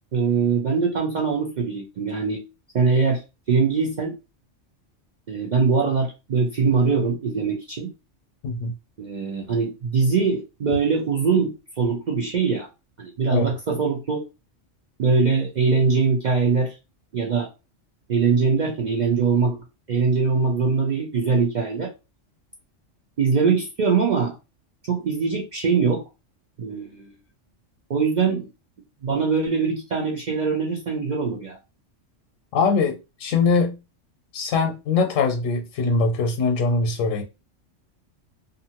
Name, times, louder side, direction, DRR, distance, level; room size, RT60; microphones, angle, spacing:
voice 1, 0.1-2.4 2.7-3.2 3.5-4.2 5.3-7.9 9.0-12.7 13.0-14.3 15.0-16.7 17.1-17.5 18.1-19.6 19.9-21.9 23.2-24.3 24.8-26.0 26.6-27.1 27.9-28.5 29.0-31.6, right 5 dB, 60° right, 0.4 m, -22 dB
voice 2, 32.5-33.7 34.3-37.2, left 4 dB, 85° left, 1.0 m, -22 dB
2.5 x 2.5 x 2.8 m
omnidirectional pair, 1.3 m